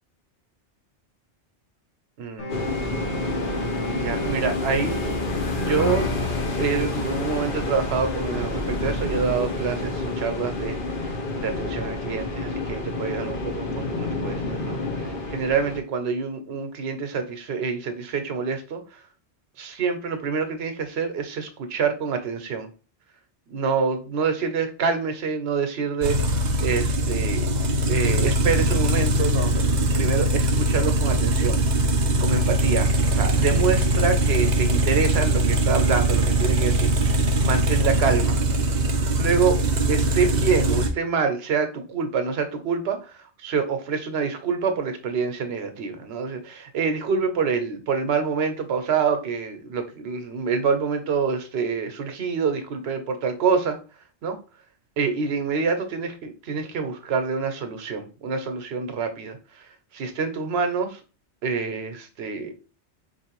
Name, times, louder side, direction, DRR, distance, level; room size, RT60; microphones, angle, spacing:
voice 1, 2.2-2.7 3.9-5.0 5.5-6.1 6.6-19.0 19.6-22.7 23.5-26.2 26.6-27.5 27.9-29.6 29.9-31.8 32.2-38.4 39.2-39.6 39.9-53.8 54.2-54.4 55.0-59.6 59.9-61.0 61.4-62.5, right 5 dB, 65° right, 7 dB, 0.9 m, -26 dB
sound 1, 2.4-8.3, right 1 dB, 75° left, 1.3 m, -34 dB
sound 2, 2.5-15.8, left 2 dB, 50° left, 0.9 m, -28 dB
sound 3, 26.0-40.9, right 1 dB, 50° right, 0.6 m, -21 dB
4.4 x 2.6 x 2.9 m, 0.34 s
omnidirectional pair, 1.2 m